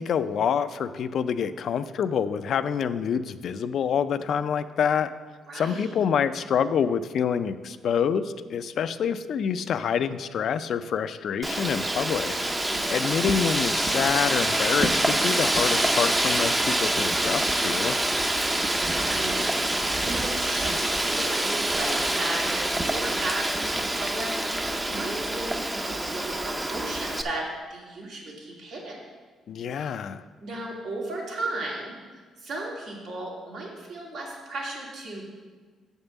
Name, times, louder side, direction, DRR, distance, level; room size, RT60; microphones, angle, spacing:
voice 1, 0.0-5.1 5.5-12.4 12.9-18.0 29.5-30.2, left 7 dB, 65° left, 12 dB, 0.4 m, -27 dB
voice 2, 5.5-5.9 12.7-13.4 18.9-29.0 29.7-29.9 30.4-31.9 32.4-35.2, right 2 dB, 80° right, -4 dB, 2.4 m, -35 dB
Wind, 11.4-27.2, right 1 dB, 15° right, 0.6 m, -26 dB
7.2 x 5.4 x 6.9 m, 1.4 s
cardioid pair, 90°, 0 cm